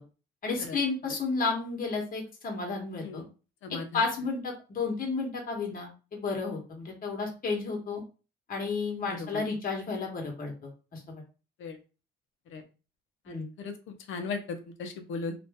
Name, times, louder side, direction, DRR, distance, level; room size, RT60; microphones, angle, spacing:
voice 1, 0.4-3.2 3.7-8.0 8.5-11.2 13.3-13.5, left 4 dB, 45° left, 1 dB, 1.2 m, -32 dB
voice 2, 13.3-13.7 14.1-15.3, left 4 dB, 80° left, 7 dB, 0.7 m, -36 dB
2.6 x 2.5 x 3.4 m, 0.32 s
cardioid pair, 90°, 20 cm